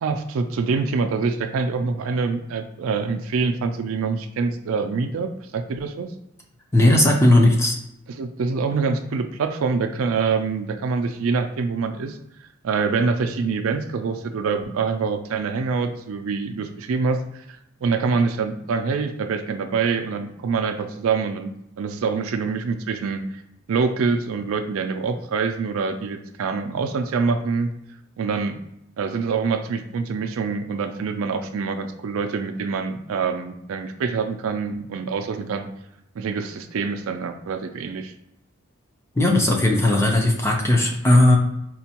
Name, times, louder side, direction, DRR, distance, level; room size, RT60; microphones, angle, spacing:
voice 1, 0.0-6.1 8.2-21.5 21.8-23.4 23.7-27.7 28.2-28.6 29.0-35.7 36.2-38.1, right 4 dB, 70° right, 7 dB, 0.4 m, -25 dB
voice 2, 6.7-7.7 39.2-41.4, left 1 dB, 10° left, 1 dB, 0.4 m, -17 dB
4.3 x 2.2 x 2.8 m, 0.79 s
head